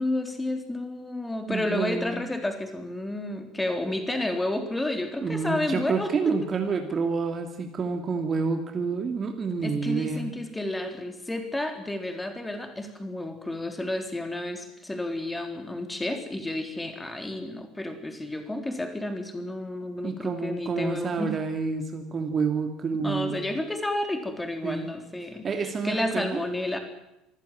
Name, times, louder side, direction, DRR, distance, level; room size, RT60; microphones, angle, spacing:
voice 1, 0.0-6.4 9.6-21.3 22.9-26.8, left 1 dB, 10° left, 6 dB, 3.8 m, -31 dB
voice 2, 1.5-2.3 5.2-10.3 20.0-23.4 24.6-24.9 25.4-26.4, right 5 dB, 30° right, 5 dB, 2.7 m, -28 dB
26.0 x 16.0 x 9.0 m, 0.88 s
figure-of-eight pair, 60°, 0 cm